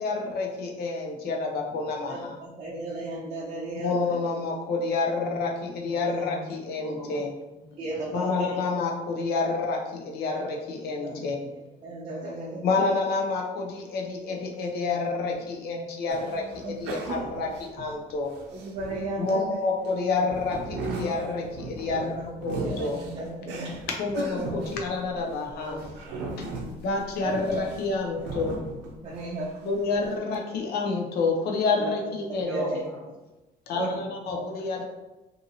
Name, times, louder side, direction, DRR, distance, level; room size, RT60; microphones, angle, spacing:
voice 1, 0.0-2.4 3.8-7.3 8.1-11.5 12.6-18.3 19.2-23.0 23.9-25.8 26.8-28.6 29.7-32.5 33.7-34.8, left 3 dB, 70° left, 1 dB, 0.6 m, -28 dB
voice 2, 1.2-1.9 2.2-2.4 2.7-3.2 4.0-4.2 5.3-5.5 5.7-7.3 7.5-7.9 8.4-8.6 12.0-12.2 18.0-18.1 20.1-20.3 20.9-21.2 22.7-22.9 23.2-24.1 24.6-26.7 28.1-28.6 29.9-30.0 31.7-31.8 32.4-33.2 33.9-34.1 34.8-34.9, left 1 dB, 10° left, -5 dB, 0.7 m, -44 dB
voice 3, 2.1-3.9 6.0-6.2 7.8-8.6 11.0-11.2 11.8-12.6 14.3-14.4 16.3-16.7 17.0-17.6 18.5-19.6 21.9-23.7 24.4-24.5 27.2-27.6 29.0-29.5 31.8-31.9 32.3-32.8 33.7-34.0 34.3-34.4, right 2 dB, 40° right, -4 dB, 0.5 m, -35 dB
sound 1, 16.1-19.3 19.8-29.4 29.8-30.1, right 2 dB, 90° right, 0.5 m, -37 dB
2.6 x 2.6 x 2.7 m, 1.0 s
cardioid pair, 110°, 17 cm